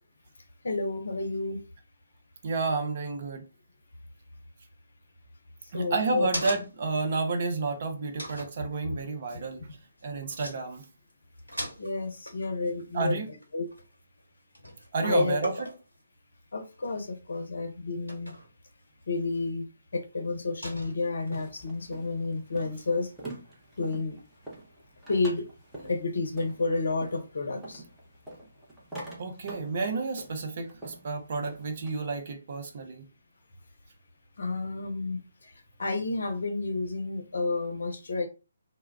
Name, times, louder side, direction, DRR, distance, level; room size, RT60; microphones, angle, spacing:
voice 1, 0.6-1.6 5.6-6.3 8.8-9.0 9.7-9.8 11.8-13.2 13.5-13.7 15.0-15.4 16.5-18.3 19.1-23.1 23.8-24.2 25.1-25.5 25.8-27.8 34.4-38.3, left 3 dB, 60° left, 0.6 m, -31 dB
voice 2, 2.4-3.4 5.7-9.6 10.0-10.8 12.9-13.3 14.9-15.5 29.2-33.0, right 3 dB, 40° right, 0.5 m, -30 dB
sound 1, 5.6-7.0 7.4-7.5 8.2-8.6 10.0-10.1 10.3-10.6 10.8-11.1 11.4-14.2 14.5-14.9 15.4-16.0 16.7-17.2 18.1-18.5 19.2-19.3 20.6-21.3, equal, 85° right, 0.9 m, -39 dB
sound 2, 21.3-31.9, right 1 dB, 5° right, 0.7 m, -46 dB
2.2 x 2.1 x 3.3 m
figure-of-eight pair, 140°, 0 cm